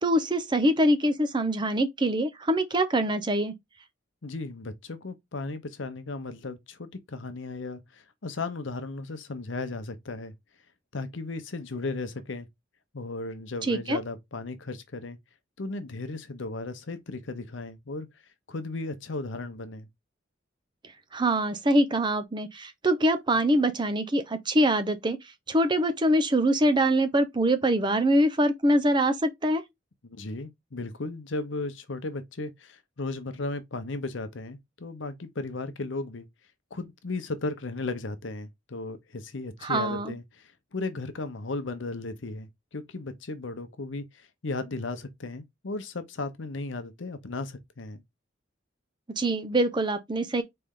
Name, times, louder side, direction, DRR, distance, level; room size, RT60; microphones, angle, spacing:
voice 1, 0.0-3.5 13.7-14.0 21.1-25.2 25.5-29.6 39.6-40.1 49.2-50.4, right 1 dB, 25° right, 0.6 m, -24 dB
voice 2, 4.2-10.3 10.9-12.5 12.9-15.2 15.6-18.1 18.5-19.9 30.0-36.3 36.7-48.0, left 3 dB, 75° left, 0.8 m, -35 dB
4.2 x 3.3 x 3.7 m
head